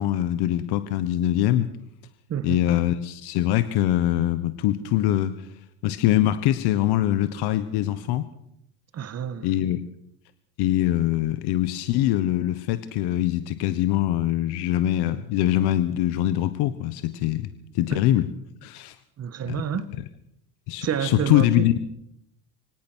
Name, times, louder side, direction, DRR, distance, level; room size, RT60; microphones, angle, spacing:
voice 1, 0.0-1.7 2.4-5.5 5.8-8.3 9.4-9.8 10.6-17.5 17.7-18.3 18.6-19.0 19.5-19.6 20.7-21.8, left 13 dB, 65° left, 1.4 m, -23 dB
voice 2, 8.9-9.5 17.9-18.0 19.2-19.9 20.8-21.8, right 8 dB, 35° right, 1.8 m, -29 dB
24.5 x 18.0 x 6.4 m
cardioid pair, 125°, 43 cm